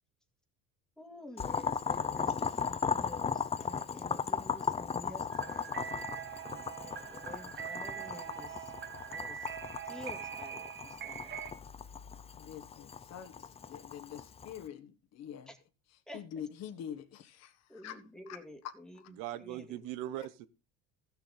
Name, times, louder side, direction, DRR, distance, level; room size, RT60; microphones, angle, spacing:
voice 1, 1.0-5.7 6.7-9.6 9.8-11.4 15.5-15.6 16.1-16.2 17.7-19.8, left 1 dB, ahead, 2.0 m, -50 dB
Boiling, 1.4-14.6, left 6 dB, 20° left, 0.6 m, -37 dB
sound 1, 5.3-11.5, right 8 dB, 35° right, 1.2 m, -43 dB
voice 2, 12.3-15.5 16.1-17.9 18.3-18.4 20.2-20.3, left 9 dB, 55° left, 1.5 m, -45 dB
voice 3, 19.2-20.5, right 13 dB, 80° right, 1.1 m, -40 dB
15.0 x 7.0 x 4.0 m
cardioid pair, 125°, 32 cm